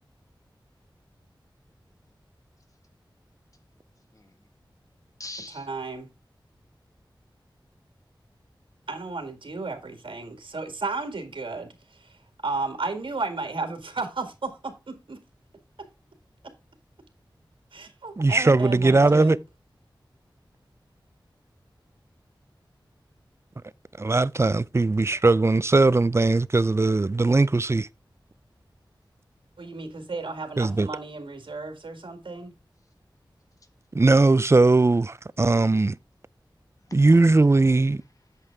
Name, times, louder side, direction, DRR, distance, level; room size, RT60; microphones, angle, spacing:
voice 1, 4.1-4.5 5.2-5.7 33.6-33.7 36.8-37.4 37.9-38.5, left 2 dB, 40° left, 1.6 m, -45 dB
voice 2, 5.5-6.1 8.9-12.2 12.4-15.2 15.8-15.9 16.4-16.5 17.7-19.4 29.6-32.5, right 3 dB, 80° right, 1.8 m, -33 dB
voice 3, 18.2-19.4 24.0-27.9 30.6-30.9 33.9-36.0 36.9-38.0, right 3 dB, 30° right, 0.4 m, -19 dB
8.3 x 7.4 x 3.4 m
wide cardioid pair, 55°, 9 cm